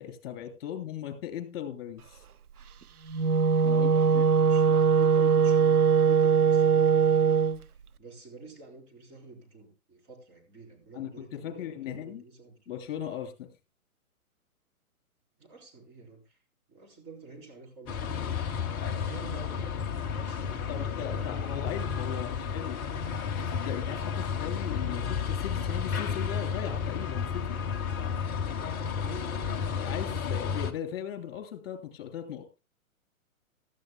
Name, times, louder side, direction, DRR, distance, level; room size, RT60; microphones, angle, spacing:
voice 1, 0.0-2.2 3.6-4.3 10.9-12.2 12.7-13.5 20.7-22.8 23.2-27.6 29.8-32.4, left 10 dB, 45° left, 7 dB, 3.1 m, -38 dB
Wind instrument woodwind instrument, 3.1-7.6, right 6 dB, 85° right, 0.8 m, -21 dB
voice 2, 3.8-7.4 7.7-12.8 15.4-16.4 16.7-19.8 20.1-21.8 22.3-22.7 29.0-29.6, right 3 dB, 25° right, -1 dB, 4.6 m, -49 dB
sound 1, 17.9-30.7, left 6 dB, 15° left, 0.6 m, -32 dB
16.5 x 12.5 x 2.3 m, 0.29 s
hypercardioid pair, 130°, 44 cm